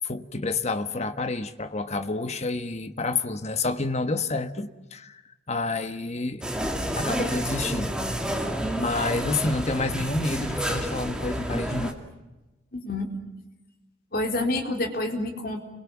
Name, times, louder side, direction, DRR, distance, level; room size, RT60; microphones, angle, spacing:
voice 1, 0.0-5.2 5.5-6.4 7.0-7.9 8.8-12.0, left 3 dB, 35° left, 9 dB, 1.4 m, -29 dB
sound 1, 6.4-11.9, equal, 5° right, 2.4 m, -29 dB
voice 2, 12.7-13.1 14.1-15.6, left 2 dB, 50° left, 3 dB, 4.1 m, -28 dB
30.0 x 23.0 x 7.2 m, 1.0 s
head